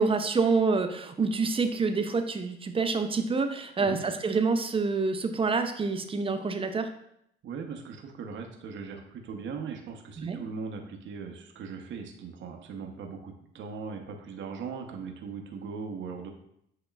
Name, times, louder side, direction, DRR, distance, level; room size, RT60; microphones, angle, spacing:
voice 1, 0.0-6.9 10.2-10.4, right 4 dB, 25° right, 7 dB, 0.5 m, -27 dB
voice 2, 7.4-16.3, right 5 dB, 65° right, 3 dB, 0.8 m, -39 dB
7.6 x 2.9 x 2.3 m, 0.74 s
supercardioid pair, 80°, 21 cm